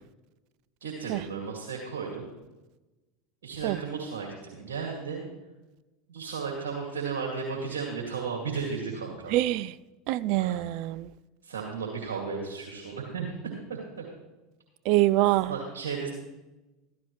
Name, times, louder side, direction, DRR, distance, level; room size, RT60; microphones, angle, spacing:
voice 1, 0.8-2.3 3.4-5.3 6.1-9.4 10.4-10.6 11.4-13.8 15.4-16.1, right 5 dB, 80° right, 2.2 m, -34 dB
voice 2, 9.3-9.7 10.1-11.1 14.9-15.5, right 16 dB, 60° right, 0.4 m, -24 dB
14.0 x 13.0 x 3.2 m
hypercardioid pair, 85°, 0 cm